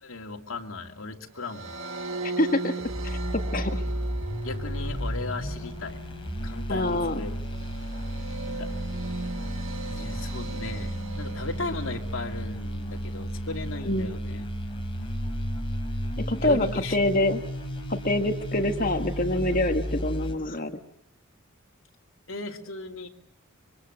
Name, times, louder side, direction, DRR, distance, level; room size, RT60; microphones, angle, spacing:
voice 1, 0.0-1.8 4.4-6.0 6.4-7.3 7.6-7.7 8.5-8.7 9.9-14.5 16.4-17.0 22.3-23.1, left 3 dB, 75° left, 3 dB, 2.7 m, -36 dB
sound 1, 1.4-12.7, right 3 dB, 70° right, 1.6 m, -38 dB
voice 2, 2.2-2.7 3.0-3.8 6.7-7.2 13.8-14.1 16.3-17.4 17.9-20.8, left 1 dB, 40° left, 6 dB, 1.6 m, -26 dB
sound 2, 2.8-20.3, equal, 25° left, 4.1 m, -33 dB
25.5 x 24.5 x 8.0 m, 0.76 s
head